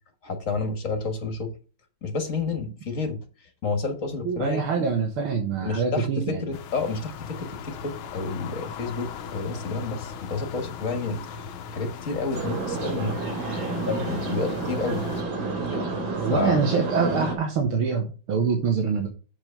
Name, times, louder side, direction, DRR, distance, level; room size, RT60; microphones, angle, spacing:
voice 1, 0.2-1.5 2.0-4.6 5.6-6.1 6.4-13.2 13.9-15.0 16.3-16.6, left 4 dB, 40° left, 6 dB, 1.7 m, -30 dB
voice 2, 4.2-6.4 13.8-14.2 16.2-19.1, right 5 dB, 90° right, 2 dB, 2.3 m, -25 dB
sound 1, 6.5-15.2, left 6 dB, 85° left, 1.6 m, -39 dB
sound 2, 12.3-17.3, right 3 dB, 70° right, 2.8 m, -30 dB
7.4 x 5.0 x 6.8 m, 0.35 s
omnidirectional pair, 2.3 m